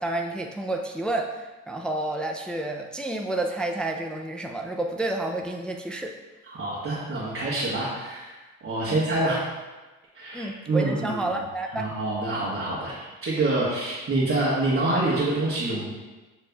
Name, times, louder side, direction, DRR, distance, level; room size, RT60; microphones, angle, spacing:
voice 1, 0.0-6.1 8.8-9.0 10.3-11.9, right 2 dB, 5° left, 2 dB, 0.3 m, -30 dB
voice 2, 6.5-8.3 8.6-9.4 10.1-11.2 11.7-15.9, right 2 dB, 45° right, -7 dB, 1.2 m, -26 dB
6.9 x 3.2 x 2.3 m, 1.2 s
cardioid pair, 90°, 30 cm